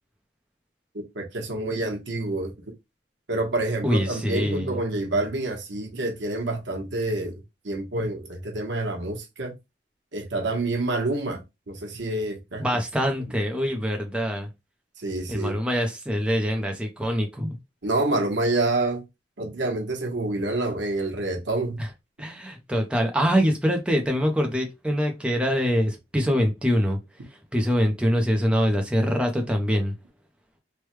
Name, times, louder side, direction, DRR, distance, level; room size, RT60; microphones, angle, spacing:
voice 1, 0.9-2.5 3.3-9.5 10.1-12.6 15.0-15.5 17.8-19.0 19.4-21.8, right 2 dB, 85° right, 1.0 m, -27 dB
voice 2, 3.8-4.8 12.6-14.5 15.3-17.6 22.2-27.0 27.5-29.9, equal, 5° right, 0.5 m, -24 dB
3.3 x 2.2 x 3.1 m
head